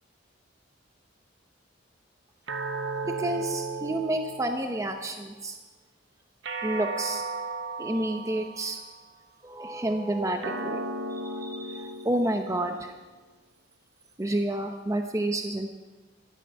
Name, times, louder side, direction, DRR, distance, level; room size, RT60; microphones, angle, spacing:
sound 1, 2.5-5.1 6.4-9.0 10.4-13.0, right 3 dB, 70° right, 1.1 m, -35 dB
voice 1, 3.0-5.6 6.6-7.2 7.8-8.8 9.4-12.9 14.2-15.7, right 1 dB, 15° right, 5 dB, 0.8 m, -30 dB
16.5 x 13.0 x 5.5 m, 1.3 s
head